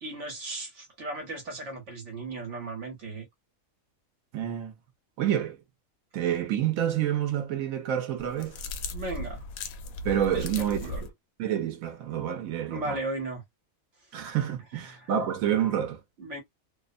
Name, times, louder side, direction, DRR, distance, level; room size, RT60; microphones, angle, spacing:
voice 1, 0.0-3.3 8.9-9.4 10.3-11.1 12.7-13.4 14.9-15.1 16.2-16.4, right 2 dB, 65° right, 1.3 m, -36 dB
voice 2, 4.3-4.7 5.2-5.6 6.1-8.6 10.0-10.8 11.4-13.0 14.1-16.0, right 10 dB, 80° right, 1.1 m, -28 dB
sound 1, 8.2-11.1, left 2 dB, 85° left, 1.0 m, -37 dB
2.8 x 2.0 x 2.5 m
omnidirectional pair, 1.4 m